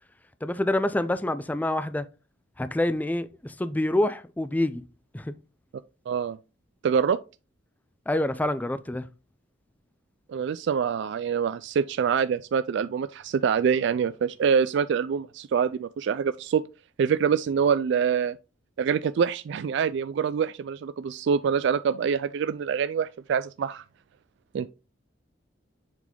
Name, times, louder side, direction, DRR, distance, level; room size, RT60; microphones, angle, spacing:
voice 1, 0.4-2.1 2.6-4.8 5.1-5.3 8.1-9.1, left 1 dB, 10° left, 0.4 m, -27 dB
voice 2, 6.1-6.4 6.8-7.2 10.3-16.6 17.0-18.4 18.8-23.8 24.5-24.7, right 7 dB, 65° right, 0.3 m, -25 dB
7.2 x 4.1 x 3.7 m
head